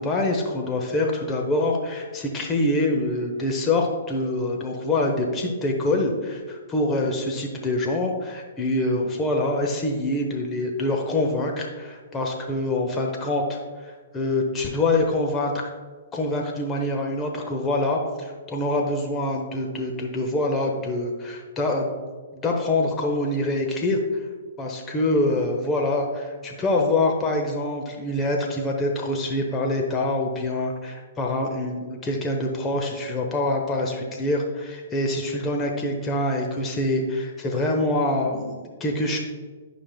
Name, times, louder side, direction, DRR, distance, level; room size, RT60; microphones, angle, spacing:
voice 1, 0.0-15.7 16.1-22.0 22.3-24.2 24.6-39.2, left 2 dB, 20° left, 0 dB, 0.9 m, -25 dB
11.5 x 5.1 x 2.2 m, 1.4 s
figure-of-eight pair, 115°, 0 cm